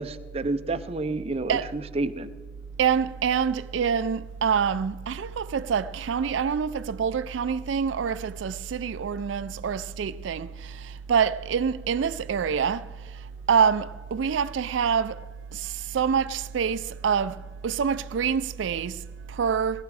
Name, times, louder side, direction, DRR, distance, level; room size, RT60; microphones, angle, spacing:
voice 1, 0.0-2.3, right 2 dB, 30° right, 0.5 m, -30 dB
voice 2, 2.8-15.2 15.5-19.8, right 7 dB, 85° right, 0.4 m, -26 dB
19.0 x 14.0 x 4.7 m
head